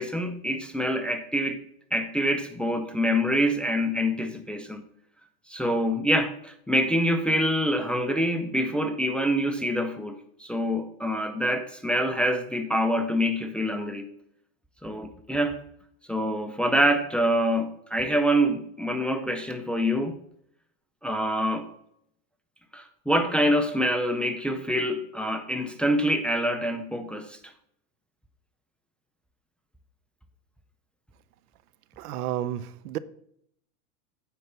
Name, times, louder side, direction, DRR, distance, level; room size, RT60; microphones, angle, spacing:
voice 1, 0.0-1.6 1.9-4.9 5.5-14.1 14.8-15.6 16.1-20.2 21.0-21.7 22.7-27.4, equal, ahead, 6 dB, 0.5 m, -26 dB
voice 2, 32.0-33.0, right 12 dB, 80° right, 16 dB, 0.8 m, -31 dB
9.4 x 4.5 x 6.8 m, 0.71 s
supercardioid pair, 125°, 45 cm